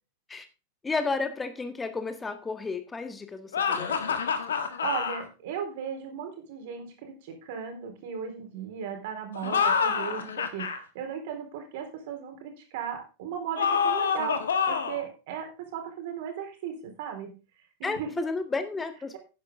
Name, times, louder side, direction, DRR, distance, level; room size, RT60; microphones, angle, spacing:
voice 1, 0.8-4.3 17.8-19.2, left 4 dB, 15° left, 1.6 m, -32 dB
sound 1, 3.5-5.2 9.3-10.8 13.6-15.0, left 6 dB, 65° left, 1.5 m, -27 dB
voice 2, 4.8-17.4 17.8-18.2, right 8 dB, 50° right, 3.9 m, -36 dB
11.5 x 10.0 x 3.7 m
figure-of-eight pair, 90°, 0 cm